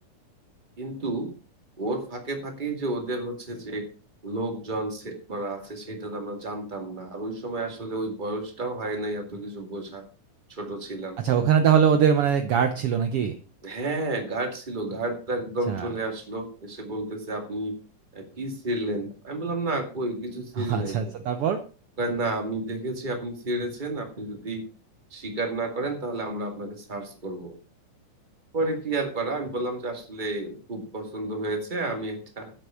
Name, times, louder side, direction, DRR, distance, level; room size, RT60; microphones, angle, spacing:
voice 1, 0.8-1.3 1.8-3.9 4.2-10.1 10.5-11.2 13.6-17.7 18.1-21.0 22.0-24.6 25.1-27.5 28.5-32.5, right 2 dB, 15° right, 4 dB, 2.0 m, -31 dB
voice 2, 11.2-13.3 15.7-15.9 20.6-21.6, right 8 dB, 70° right, 8 dB, 1.4 m, -22 dB
11.5 x 8.1 x 5.7 m, 0.36 s
omnidirectional pair, 3.7 m